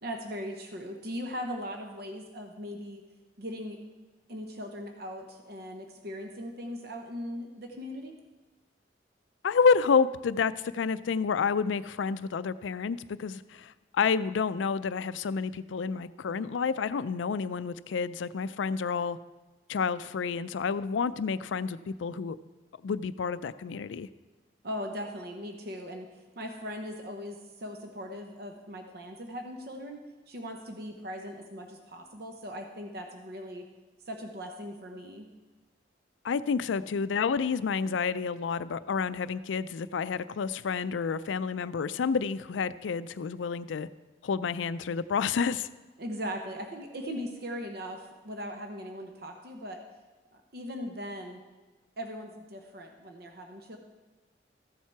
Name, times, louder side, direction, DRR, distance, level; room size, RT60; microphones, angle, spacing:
voice 1, 0.0-3.0 3.4-3.8 4.3-8.1 24.6-26.1 26.4-33.6 34.1-35.3 46.0-49.8 50.3-51.4 52.0-53.8, equal, 55° right, 4 dB, 0.9 m, -39 dB
voice 2, 9.4-19.2 19.7-22.4 22.8-24.1 36.2-43.9 44.2-45.7, left 5 dB, 85° left, 15 dB, 0.4 m, -29 dB
14.0 x 7.3 x 4.6 m, 1.2 s
head